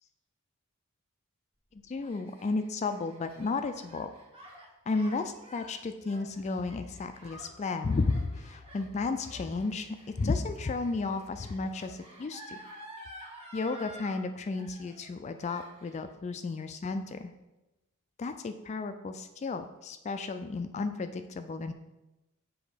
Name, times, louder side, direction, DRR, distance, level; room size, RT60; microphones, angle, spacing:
voice 1, 1.7-4.1 4.9-12.6 13.5-17.3 18.2-21.7, left 3 dB, 30° left, 9 dB, 0.3 m, -33 dB
Gasp, 1.7-14.2 14.5-15.1 15.4-16.0, equal, 25° right, 1.5 m, -50 dB
7.0 x 3.2 x 5.0 m, 1.0 s
head